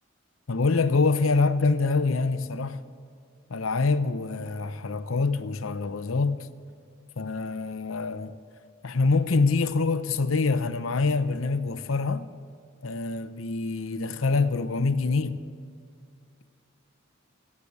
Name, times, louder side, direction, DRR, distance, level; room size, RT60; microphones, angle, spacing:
voice 1, 0.5-2.8 3.5-6.5 7.2-8.3 8.8-12.3 12.8-15.4, left 3 dB, 90° left, 0.7 m, -25 dB
13.5 x 8.5 x 8.5 m
head